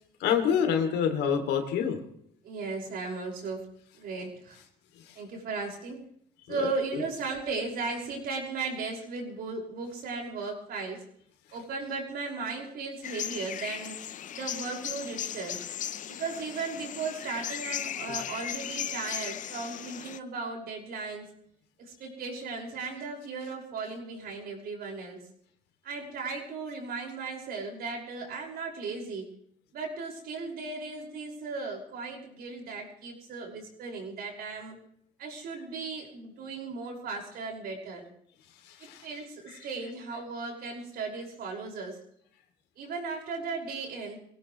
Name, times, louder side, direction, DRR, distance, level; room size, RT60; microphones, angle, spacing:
voice 1, 0.2-2.0 6.5-7.0 18.1-18.3 38.7-39.1 39.5-39.6, left 7 dB, 85° left, 5 dB, 2.8 m, -28 dB
voice 2, 2.4-3.7 4.0-4.6 5.1-6.0 6.5-11.0 11.5-14.0 14.3-15.6 16.1-21.3 21.8-25.2 25.8-29.3 29.7-34.8 35.2-38.0 39.0-42.0 42.8-44.2, right 4 dB, 65° right, 0 dB, 5.8 m, -36 dB
sound 1, 13.0-20.2, left 10 dB, 50° left, 0.7 m, -37 dB
24.0 x 17.5 x 3.2 m, 0.67 s
cardioid pair, 110°, 17 cm